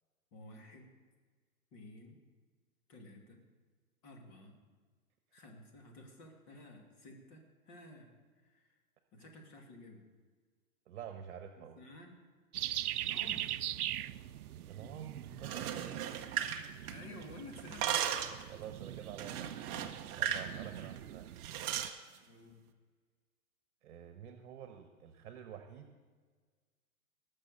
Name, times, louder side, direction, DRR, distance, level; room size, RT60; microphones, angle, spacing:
voice 1, 0.3-0.9 1.7-2.2 2.9-3.4 4.0-4.6 5.3-8.8 9.1-10.0 11.6-12.1 13.0-13.6 16.8-18.5 18.9-19.1 20.5-20.9 22.3-22.6, left 2 dB, 35° left, 1 dB, 2.6 m, -53 dB
voice 2, 10.9-11.8 14.7-16.0 18.5-19.5 20.2-21.3 23.8-25.9, right 9 dB, 55° right, 6 dB, 1.3 m, -48 dB
sound 1, 12.5-21.9, right 13 dB, 80° right, 0.6 m, -42 dB
sound 2, 15.3-17.2 17.5-18.4 19.2-20.5 20.8-21.0 21.4-22.0, right 9 dB, 25° right, 0.7 m, -36 dB
19.5 x 6.6 x 6.7 m, 1.5 s
hypercardioid pair, 145°, 44 cm